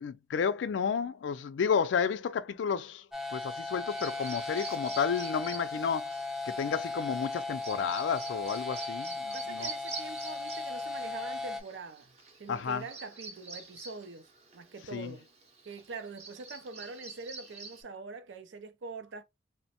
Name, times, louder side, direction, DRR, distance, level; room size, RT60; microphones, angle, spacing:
voice 1, 0.0-3.0 3.3-6.1 6.5-9.7 12.5-12.8 14.9-15.1, left 6 dB, 80° left, 0.3 m, -31 dB
sound 1, 3.1-11.6, left 3 dB, ahead, 0.3 m, -37 dB
Bird vocalization bird call bird song, 3.9-17.8, right 3 dB, 35° right, 0.7 m, -47 dB
voice 2, 9.3-15.3 15.6-19.2, right 4 dB, 80° right, 0.5 m, -44 dB
2.9 x 2.1 x 2.7 m
head